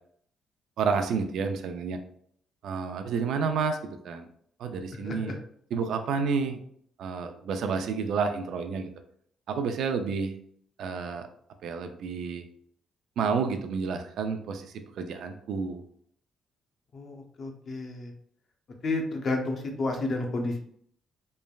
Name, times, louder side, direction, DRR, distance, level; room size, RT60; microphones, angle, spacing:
voice 1, 0.8-2.0 2.6-4.3 4.6-5.3 5.7-6.6 7.0-8.9 9.5-10.3 10.8-11.3 11.6-12.4 13.2-15.8, right 5 dB, 75° right, 7 dB, 0.3 m, -30 dB
voice 2, 16.9-18.1 18.8-20.6, left 2 dB, 50° left, 2 dB, 0.6 m, -31 dB
3.2 x 2.1 x 2.3 m, 0.64 s
cardioid pair, 90°, 0 cm